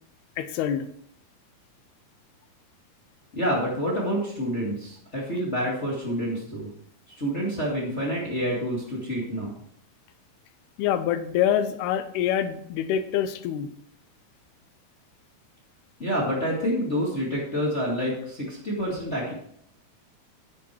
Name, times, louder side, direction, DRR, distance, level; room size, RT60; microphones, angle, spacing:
voice 1, 0.4-0.9 10.8-13.7, left 10 dB, 85° left, 10 dB, 2.8 m, -25 dB
voice 2, 3.3-6.7 7.2-9.5 16.0-19.3, equal, 25° left, -3 dB, 1.6 m, -28 dB
9.8 x 8.4 x 4.5 m, 0.68 s
omnidirectional pair, 4.5 m